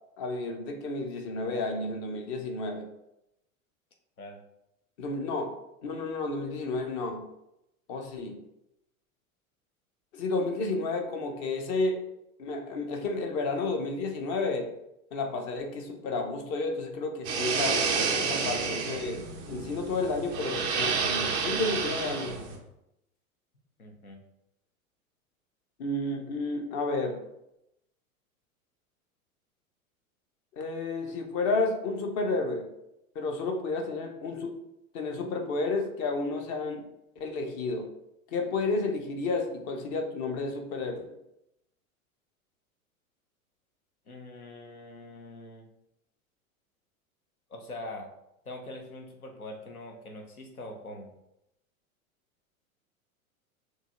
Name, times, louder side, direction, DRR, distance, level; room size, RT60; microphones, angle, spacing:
voice 1, 0.2-2.9 5.0-5.5 5.8-7.3 7.9-8.4 10.1-12.0 12.4-14.7 15.1-17.8 18.2-22.4 25.8-27.2 30.5-32.7 33.1-34.6 34.9-36.9 37.2-37.9 38.3-41.1, left 3 dB, 30° left, 5 dB, 0.7 m, -31 dB
sound 1, 17.2-22.6, right 5 dB, 10° right, 0.3 m, -30 dB
voice 2, 23.8-24.2 44.1-45.7 47.5-48.1 48.4-51.1, left 1 dB, 80° left, 3 dB, 1.0 m, -43 dB
6.4 x 3.1 x 2.4 m, 0.85 s
figure-of-eight pair, 90°, 43 cm